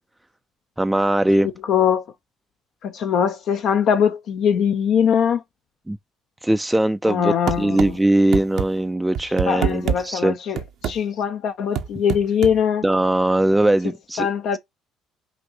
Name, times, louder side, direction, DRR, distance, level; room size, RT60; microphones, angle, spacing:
voice 1, 0.8-1.5 5.9-6.0 6.4-10.4 12.8-14.3, right 1 dB, 10° right, 0.3 m, -20 dB
voice 2, 1.6-2.1 2.8-5.4 7.1-8.0 9.2-12.8 14.2-14.6, left 8 dB, 60° left, 0.5 m, -21 dB
sound 1, 7.5-7.9 8.3-8.7 9.1-10.0 10.6-11.0 11.7-12.6, right 8 dB, 65° right, 0.6 m, -24 dB
5.8 x 2.6 x 2.7 m
hypercardioid pair, 65°, 0 cm